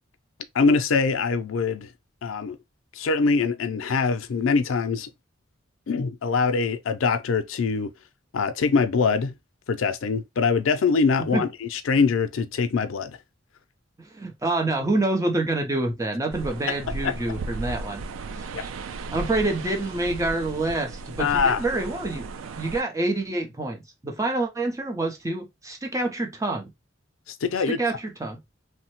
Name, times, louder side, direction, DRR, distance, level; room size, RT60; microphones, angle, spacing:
voice 1, 0.5-1.9 2.2-2.6 2.9-5.1 5.9-7.9 8.3-9.3 9.7-13.2 17.0-17.1 18.5-18.6 21.2-21.6 27.3-27.8, left 4 dB, 80° left, 0.4 m, -23 dB
voice 2, 14.1-18.0 18.3-18.7 19.1-22.3 22.6-26.7 27.7-28.4, right 2 dB, 15° right, 0.6 m, -27 dB
sound 1, 16.3-22.8, right 3 dB, 85° right, 0.4 m, -35 dB
3.1 x 2.1 x 2.8 m
head